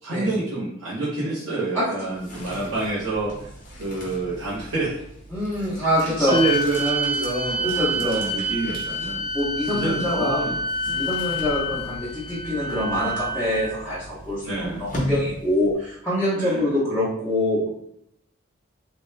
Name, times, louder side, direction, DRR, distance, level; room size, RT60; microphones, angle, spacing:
voice 1, 0.0-3.5 3.8-5.0 6.0-9.2 9.7-11.1 11.6-11.9 14.4-14.8 16.3-16.7, right 2 dB, 85° right, -11 dB, 1.0 m, -27 dB
sound 1, 2.0-16.0, equal, 40° left, 0.8 m, -38 dB
voice 2, 5.3-6.4 7.7-8.2 9.3-10.4 10.9-17.7, left 1 dB, 5° left, -13 dB, 1.0 m, -25 dB
sound 2, 6.3-13.8, equal, 45° right, 1.0 m, -28 dB
3.0 x 2.2 x 3.3 m, 0.73 s
head